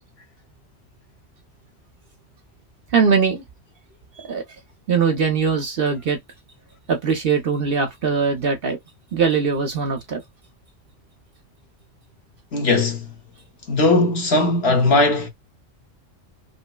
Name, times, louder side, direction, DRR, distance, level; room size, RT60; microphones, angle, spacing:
voice 1, 2.9-3.4 4.2-4.4 4.9-6.2 6.9-8.8 9.1-10.2, right 5 dB, 55° right, 0.8 m, -21 dB
voice 2, 12.5-13.1 13.7-15.3, left 2 dB, 55° left, 1.2 m, -18 dB
5.0 x 2.1 x 2.2 m
omnidirectional pair, 1.3 m